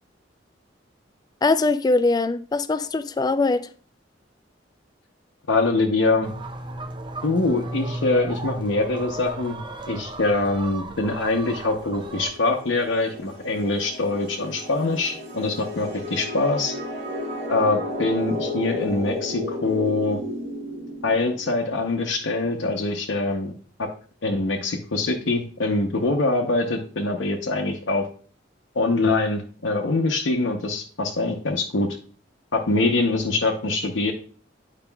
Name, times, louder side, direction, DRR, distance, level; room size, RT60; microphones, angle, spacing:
voice 1, 1.4-3.7, left 3 dB, 20° left, 0.3 m, -22 dB
voice 2, 5.5-6.3 7.2-9.6 9.9-16.7 17.5-20.2 21.0-23.5 23.8-23.9 24.2-28.1 28.7-31.9 32.5-34.1, left 2 dB, 85° left, 0.7 m, -24 dB
sound 1, 6.2-12.3, right 2 dB, 25° right, 0.5 m, -34 dB
sound 2, 11.3-21.7, left 1 dB, 40° right, 1.3 m, -33 dB
8.8 x 4.9 x 2.3 m
head